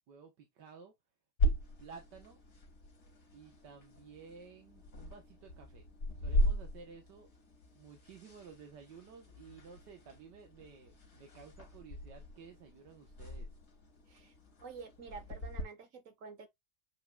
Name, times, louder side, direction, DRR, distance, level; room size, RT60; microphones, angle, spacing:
voice 1, 0.1-0.9 1.8-2.4 3.3-5.9 6.2-7.3 7.7-13.5, right 6 dB, 85° right, 1.9 m, -54 dB
sound 1, 1.4-15.6, equal, 65° left, 2.8 m, -38 dB
voice 2, 14.6-16.5, right 5 dB, 50° right, 1.6 m, -49 dB
7.9 x 5.1 x 2.4 m
omnidirectional pair, 1.8 m